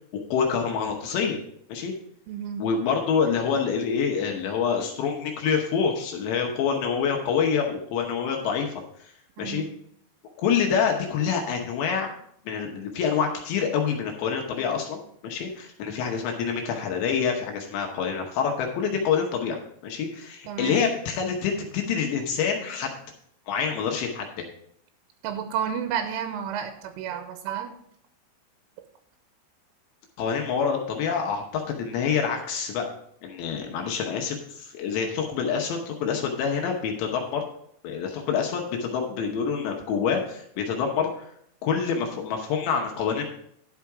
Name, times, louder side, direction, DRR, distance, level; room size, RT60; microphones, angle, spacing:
voice 1, 0.1-1.4 1.7-1.9 2.6-8.7 9.0-9.1 9.4-9.7 10.4-12.2 12.5-22.9 23.5-24.4 30.2-32.9 33.2-37.4 37.8-41.3 41.6-43.2, left 6 dB, 75° left, 1 dB, 3.0 m, -26 dB
voice 2, 2.3-2.7 9.4-9.7 20.5-20.9 25.2-27.7, right 8 dB, 85° right, 7 dB, 3.2 m, -31 dB
11.0 x 5.8 x 4.7 m, 0.68 s
omnidirectional pair, 5.7 m